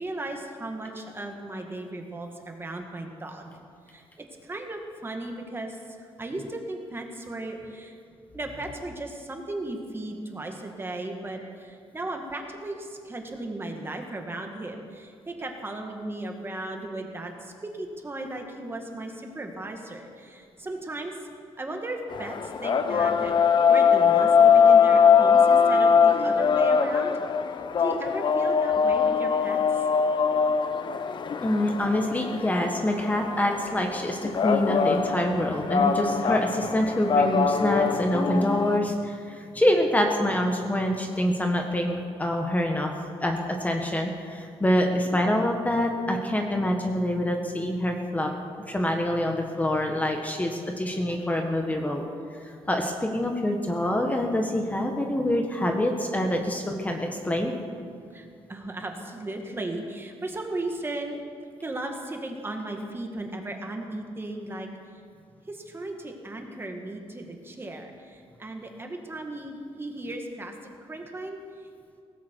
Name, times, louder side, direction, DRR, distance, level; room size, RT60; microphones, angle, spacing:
voice 1, 0.0-8.0 8.3-21.2 21.6-23.3 23.7-27.1 27.8-29.6 58.1-61.2 61.6-64.7 65.5-71.4, right 2 dB, 20° right, 3 dB, 1.9 m, -36 dB
sound 1, 22.1-38.8, left 6 dB, 45° left, 0.8 m, -22 dB
voice 2, 31.4-42.9 43.2-48.3 48.7-52.0 52.7-57.5, left 1 dB, 15° left, 2 dB, 1.4 m, -26 dB
18.0 x 16.0 x 4.7 m, 2.3 s
cardioid pair, 115°, 11 cm